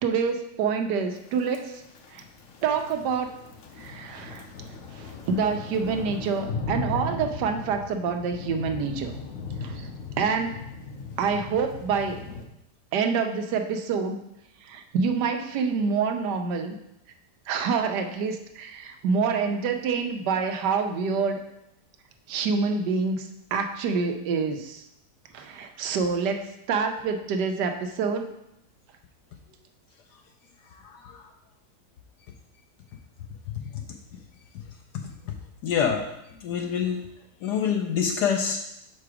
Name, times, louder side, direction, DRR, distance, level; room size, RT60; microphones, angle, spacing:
voice 1, 0.0-1.8 2.1-2.2 2.6-3.3 3.8-4.4 4.9-9.2 9.6-9.9 10.2-10.6 11.2-12.2 12.9-14.2 14.6-16.7 17.5-21.4 22.3-24.8 25.3-28.3, right 5 dB, 80° right, 6 dB, 1.3 m, -27 dB
sound 1, 1.4-12.5, left 4 dB, 60° left, 1.0 m, -37 dB
voice 2, 30.8-31.3 34.9-35.3 35.6-36.1 36.4-37.0 37.4-38.6, left 7 dB, 75° left, 3 dB, 1.2 m, -26 dB
5.8 x 4.7 x 4.8 m, 0.83 s
omnidirectional pair, 1.8 m